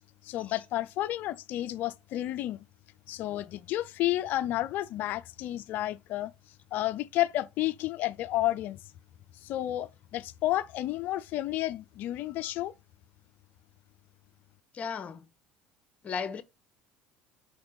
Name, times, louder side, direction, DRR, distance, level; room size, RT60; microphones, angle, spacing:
voice 1, 0.2-2.6 3.1-6.3 6.7-8.8 9.4-12.7, left 15 dB, 60° left, 0.5 m, -31 dB
voice 2, 14.7-15.3 16.0-16.4, left 6 dB, 40° left, 1.0 m, -35 dB
5.1 x 4.5 x 4.3 m
hypercardioid pair, 70°, 4 cm